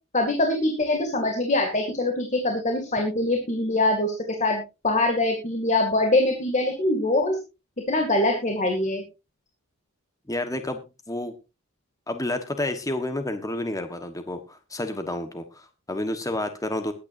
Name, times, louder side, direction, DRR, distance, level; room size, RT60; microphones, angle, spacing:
voice 1, 0.1-4.1 4.4-7.4 7.9-9.0, left 2 dB, 35° left, 3 dB, 2.3 m, -23 dB
voice 2, 10.3-10.8 11.1-11.3 12.1-16.9, left 1 dB, 15° left, 8 dB, 1.3 m, -30 dB
21.0 x 9.5 x 2.6 m, 0.28 s
head